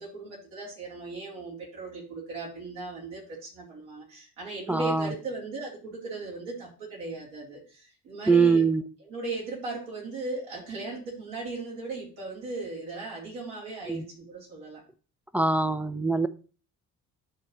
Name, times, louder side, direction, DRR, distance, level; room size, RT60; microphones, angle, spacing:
voice 1, 0.0-8.6 9.0-14.8, right 3 dB, 70° right, -4 dB, 3.8 m, -37 dB
voice 2, 4.7-5.1 8.3-8.8 13.9-14.0 15.3-16.3, right 4 dB, 5° right, 13 dB, 0.4 m, -23 dB
12.0 x 4.4 x 3.2 m, 0.38 s
figure-of-eight pair, 45°, 45 cm